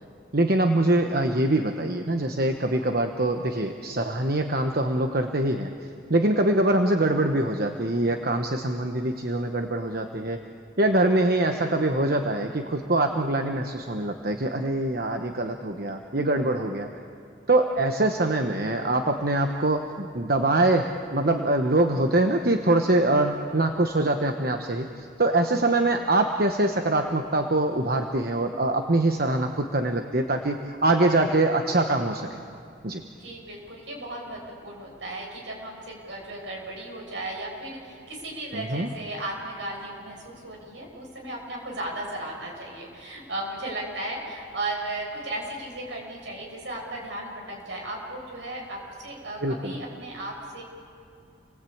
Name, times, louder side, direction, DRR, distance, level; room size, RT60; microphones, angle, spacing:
voice 1, 0.3-5.7 6.1-10.4 10.8-16.9 17.5-32.3 32.8-33.0 38.5-38.9 49.4-49.8, right 2 dB, 50° right, 5 dB, 1.1 m, -24 dB
voice 2, 33.2-50.6, right 1 dB, 70° right, -1 dB, 6.9 m, -35 dB
29.5 x 19.5 x 8.7 m, 2.4 s
head